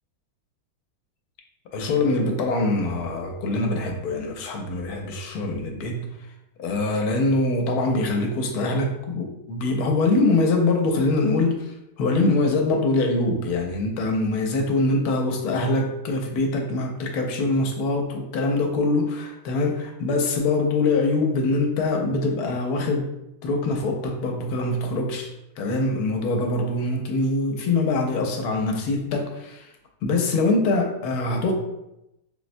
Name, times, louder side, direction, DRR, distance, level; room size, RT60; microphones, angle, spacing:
voice 1, 1.7-6.1 6.6-23.1 23.4-29.7 30.0-31.5, left 2 dB, 80° left, 2 dB, 1.1 m, -24 dB
3.9 x 2.1 x 2.5 m, 0.87 s
omnidirectional pair, 1.6 m